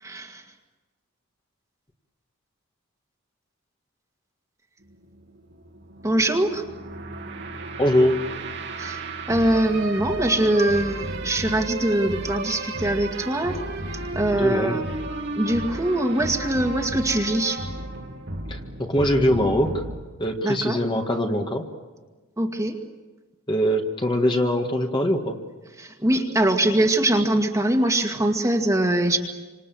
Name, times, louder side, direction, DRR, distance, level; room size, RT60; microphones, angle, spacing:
voice 1, 0.0-0.4 6.0-6.6 8.8-9.0 9.3-13.6 14.1-14.8 15.4-17.6 20.4-20.8 22.4-22.8 25.8-29.2, right 1 dB, 15° right, 3 dB, 2.0 m, -22 dB
sound 1, 4.8-20.0, right 2 dB, 55° right, 2.4 m, -33 dB
voice 2, 7.8-8.2 14.3-14.8 18.5-19.8 20.2-21.7 23.5-25.4, equal, 20° left, 3 dB, 1.8 m, -22 dB
27.5 x 26.5 x 7.8 m, 1.2 s
head